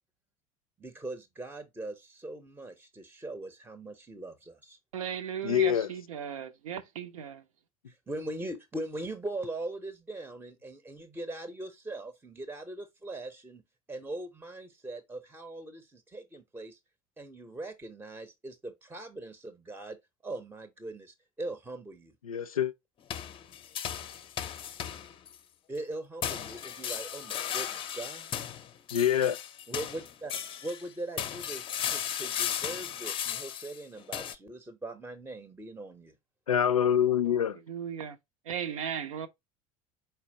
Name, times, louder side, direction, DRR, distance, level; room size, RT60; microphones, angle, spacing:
voice 1, 0.8-4.8 7.9-13.6 13.9-16.8 17.2-20.0 20.2-22.1 25.7-28.3 29.7-30.3 30.6-36.1, right 2 dB, 10° right, 0.6 m, -41 dB
voice 2, 4.9-7.4 37.7-38.2 38.5-39.3, right 8 dB, 70° right, 0.6 m, -36 dB
voice 3, 5.4-5.9 22.2-22.7 28.9-29.4 36.5-37.6, left 9 dB, 80° left, 0.4 m, -25 dB
sound 1, 23.1-25.4 26.2-30.9 31.2-34.4, left 9 dB, 30° left, 0.6 m, -36 dB
4.5 x 4.3 x 2.7 m
figure-of-eight pair, 70°, 18 cm